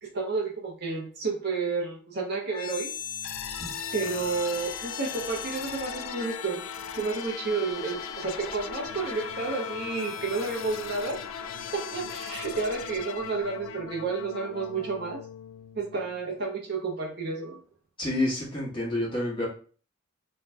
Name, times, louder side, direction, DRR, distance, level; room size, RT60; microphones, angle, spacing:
voice 1, 0.0-2.9 3.9-6.6 6.9-11.2 11.7-15.2 15.7-17.6, right 4 dB, 50° right, 0 dB, 0.6 m, -31 dB
sound 1, 2.5-16.4, left 7 dB, 80° left, 0.3 m, -38 dB
voice 2, 18.0-19.5, left 1 dB, 25° left, -5 dB, 1.0 m, -28 dB
2.6 x 2.1 x 3.2 m, 0.41 s
head